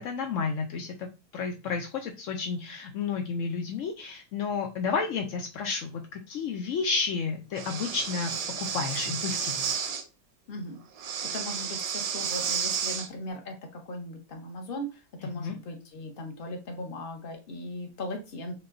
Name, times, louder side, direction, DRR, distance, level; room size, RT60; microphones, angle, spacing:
voice 1, 0.0-8.3 8.6-9.7 15.3-15.6, left 5 dB, 80° left, 2 dB, 0.7 m, -31 dB
Breathing, 7.5-10.0 11.0-13.1, right 7 dB, 85° right, 1.3 m, -32 dB
voice 2, 10.5-10.8 11.3-13.5 13.8-18.5, left 1 dB, 45° left, 2 dB, 0.8 m, -38 dB
6.4 x 2.2 x 2.5 m, 0.29 s
omnidirectional pair, 1.9 m